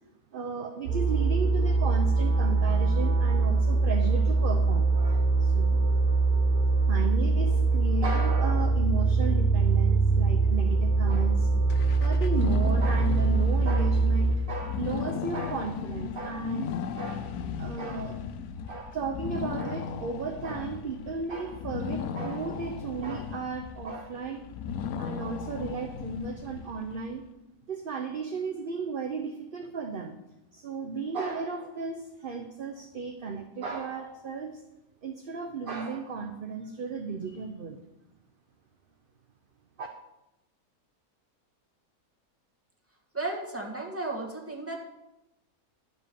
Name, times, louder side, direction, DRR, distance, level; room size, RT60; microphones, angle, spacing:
voice 1, 0.3-5.8 6.9-11.5 12.0-17.3 17.6-18.2 18.7-24.5 24.9-27.2 27.7-30.1 30.5-34.6 35.0-37.8 39.8-39.9, right 4 dB, 45° right, 4 dB, 0.8 m, -34 dB
sound 1, 0.9-14.4, right 3 dB, 75° right, 1.8 m, -23 dB
sound 2, 11.7-27.1, left 7 dB, 90° left, 1.2 m, -36 dB
voice 2, 43.1-44.9, right 2 dB, 10° right, -1 dB, 1.7 m, -34 dB
11.5 x 5.2 x 6.9 m, 0.92 s
omnidirectional pair, 1.6 m